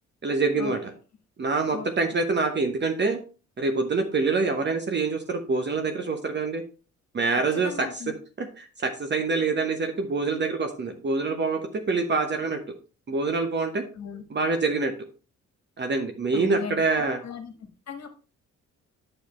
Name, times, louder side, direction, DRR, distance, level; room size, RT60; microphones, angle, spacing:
voice 1, 0.2-0.8 1.4-3.2 3.6-6.6 7.1-7.9 8.4-12.6 13.1-13.8 14.3-14.9 15.8-17.2, right 4 dB, 35° right, 5 dB, 1.0 m, -25 dB
voice 2, 7.3-8.1 13.9-14.2 16.3-17.5 17.9-18.1, left 7 dB, 60° left, 6 dB, 1.6 m, -37 dB
8.4 x 6.7 x 3.1 m, 0.35 s
cardioid pair, 90°, 30 cm